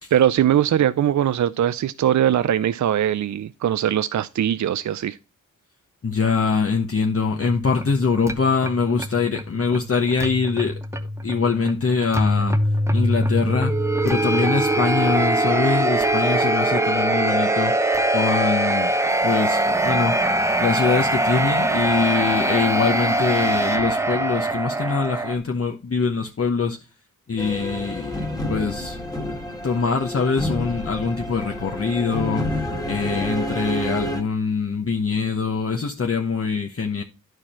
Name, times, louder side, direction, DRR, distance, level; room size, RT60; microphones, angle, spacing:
voice 1, 0.1-5.2, right 10 dB, 60° right, 0.5 m, -21 dB
voice 2, 6.0-10.7 11.2-12.6 12.9-13.7 14.0-17.7 18.1-18.9 19.2-20.2 20.6-26.8 27.3-28.2 28.5-29.3 29.6-37.0, left 5 dB, 45° left, 1.1 m, -23 dB
sound 1, 7.3-25.4, right 1 dB, 10° right, 0.9 m, -23 dB
sound 2, 27.4-34.2, equal, 10° left, 1.9 m, -29 dB
10.5 x 4.8 x 4.3 m
cardioid pair, 55°, 33 cm